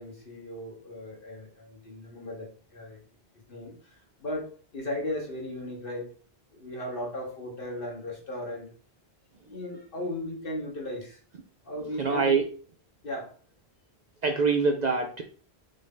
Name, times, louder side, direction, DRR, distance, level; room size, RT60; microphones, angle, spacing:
voice 1, 0.0-3.0 3.5-6.1 6.5-8.7 9.5-11.2 11.6-12.4 13.0-13.3, left 1 dB, 60° left, -1 dB, 1.5 m, -36 dB
voice 2, 12.0-12.4 14.2-15.2, right 4 dB, 50° right, 4 dB, 0.6 m, -24 dB
5.2 x 2.7 x 3.7 m, 0.41 s
omnidirectional pair, 1.1 m